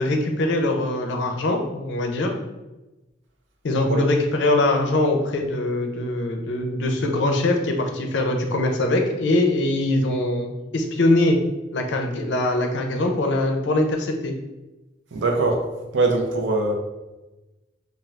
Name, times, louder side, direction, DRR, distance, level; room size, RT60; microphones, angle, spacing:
voice 1, 0.0-2.3 3.6-11.4 11.7-14.3, left 2 dB, 70° left, 3 dB, 0.4 m, -22 dB
voice 2, 15.1-15.6 15.9-16.7, right 3 dB, 85° right, 2 dB, 0.5 m, -22 dB
2.4 x 2.3 x 3.2 m, 1.1 s
head